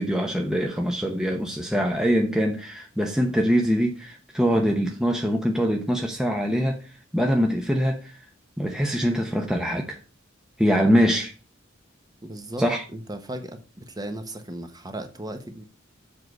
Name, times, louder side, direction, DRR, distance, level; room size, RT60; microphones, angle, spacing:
voice 1, 0.0-6.8 7.1-8.2 8.6-10.0 10.6-11.3 12.6-12.8, equal, 5° right, 0.8 m, -23 dB
voice 2, 12.2-12.6 12.9-15.6, right 1 dB, 20° right, 1.1 m, -36 dB
7.5 x 4.6 x 6.4 m
head